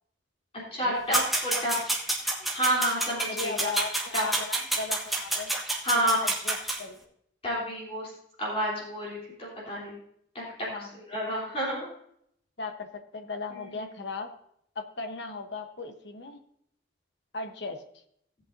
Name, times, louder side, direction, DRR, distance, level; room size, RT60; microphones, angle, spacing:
voice 1, 0.7-1.8 2.5-3.7 4.1-4.3 5.8-6.2 7.4-8.1 8.4-9.9 10.3-11.9, right 1 dB, 30° left, -6 dB, 3.4 m, -29 dB
sound 1, 1.1-6.8, right 2 dB, ahead, 1.2 m, -29 dB
voice 2, 3.3-5.5 5.9-7.1 10.7-11.0 12.6-14.3 14.7-16.4 17.3-17.8, left 3 dB, 60° left, 6 dB, 1.0 m, -37 dB
17.5 x 8.3 x 2.7 m, 0.71 s
head